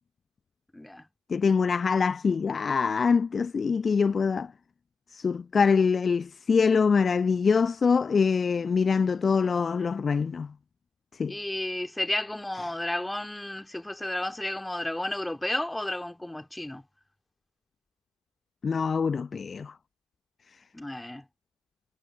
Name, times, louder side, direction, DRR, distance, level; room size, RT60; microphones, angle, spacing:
voice 1, 0.7-1.0 11.3-16.8 20.7-21.2, left 1 dB, 5° left, 2.4 m, -32 dB
voice 2, 1.3-4.5 5.1-10.5 11.1-11.4 18.6-19.7, left 5 dB, 20° left, 0.7 m, -24 dB
figure-of-eight pair, 75°, 0 cm